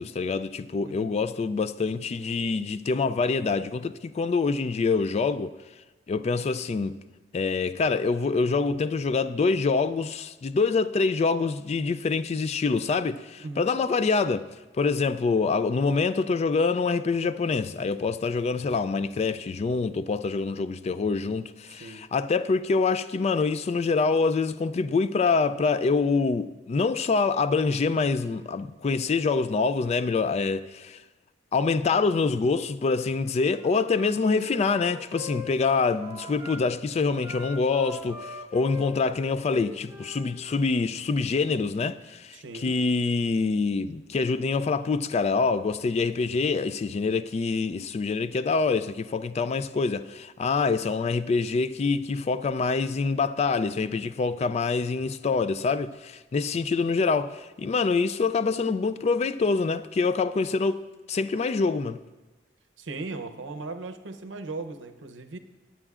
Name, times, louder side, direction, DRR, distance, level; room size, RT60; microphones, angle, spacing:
voice 1, 0.0-5.5 6.1-7.0 7.3-14.5 14.7-31.0 31.5-60.8 61.1-62.0, left 4 dB, 35° left, 0.3 m, -25 dB
voice 2, 0.8-1.1 13.4-13.7 21.7-22.0 42.3-42.7 62.8-65.4, right 3 dB, 80° right, 0.7 m, -38 dB
Wind instrument woodwind instrument, 33.3-36.6 37.2-40.7, left 3 dB, 10° right, 1.1 m, -41 dB
19.0 x 8.7 x 2.4 m
head